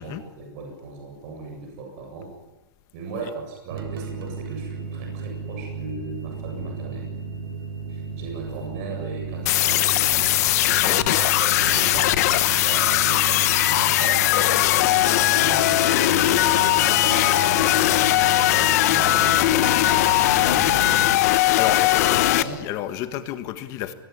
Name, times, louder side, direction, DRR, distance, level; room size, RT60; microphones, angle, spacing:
voice 1, 0.0-2.3 2.9-7.0 7.9-10.0 10.7-10.8 11.2-14.3 15.3-20.9 21.5-22.7, right 3 dB, 40° right, 2 dB, 7.9 m, -37 dB
sound 1, 3.7-21.2, right 5 dB, 80° right, 3.7 m, -34 dB
sound 2, 9.5-22.4, left 16 dB, 45° left, 1.1 m, -19 dB
voice 2, 10.6-11.0 21.6-23.9, left 13 dB, 30° left, 11 dB, 1.7 m, -31 dB
23.5 x 22.0 x 10.0 m, 1.1 s
supercardioid pair, 165°, 12 cm